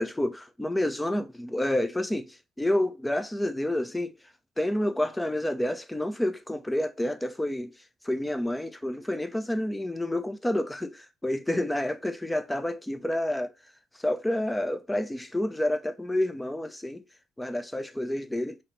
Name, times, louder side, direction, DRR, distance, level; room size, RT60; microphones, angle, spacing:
voice 1, 0.0-4.2 4.6-7.7 8.0-13.5 14.0-17.0 17.4-18.6, left 1 dB, 10° left, 0.5 m, -29 dB
5.4 x 2.9 x 3.3 m
cardioid pair, 90°, 0 cm